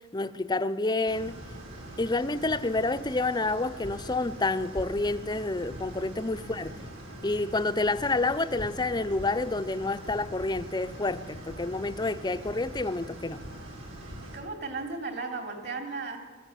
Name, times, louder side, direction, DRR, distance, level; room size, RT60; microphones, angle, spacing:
voice 1, 0.1-1.4 2.0-6.7 7.2-13.5, left 2 dB, 20° left, 0.6 m, -29 dB
sound 1, 1.1-14.4, right 1 dB, 70° right, 5.6 m, -43 dB
voice 2, 6.3-6.8 14.0-16.2, right 3 dB, 55° right, 3.5 m, -37 dB
20.0 x 14.5 x 9.1 m
head